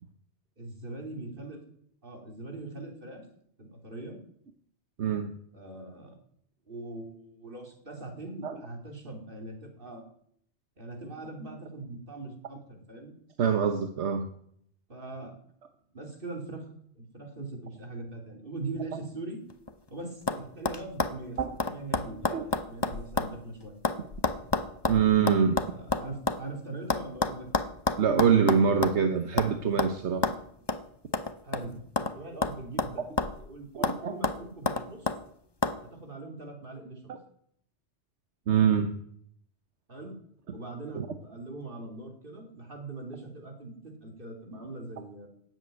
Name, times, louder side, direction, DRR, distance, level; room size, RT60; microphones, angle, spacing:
voice 1, 0.6-1.6 2.0-3.2 3.6-4.2 5.5-6.1 6.7-10.0 10.8-13.1 14.9-15.3 15.9-16.6 16.9-19.4 19.9-21.4 21.7-23.8 25.7-27.5 31.4-33.1 33.4-35.1 35.8-37.1 39.9-40.2 40.5-45.3, right 2 dB, 50° right, 2 dB, 3.0 m, -41 dB
voice 2, 5.0-5.3 8.4-8.6 13.4-14.3 21.4-21.5 22.3-22.4 24.9-25.7 28.0-30.2 33.7-34.2 38.5-38.9 40.9-41.1, right 7 dB, 75° right, 7 dB, 1.3 m, -24 dB
sound 1, 19.5-19.9 20.3-20.4 20.6-23.4 23.6-26.4 26.9-29.0 29.4-29.5 29.8-29.9 30.2-30.4 30.7-30.8 31.1-32.1 32.4-33.5 33.8-34.0 34.2-35.2 35.6-35.8, left 3 dB, 25° left, 0.7 m, -29 dB
13.0 x 7.9 x 9.3 m, 0.68 s
omnidirectional pair, 1.2 m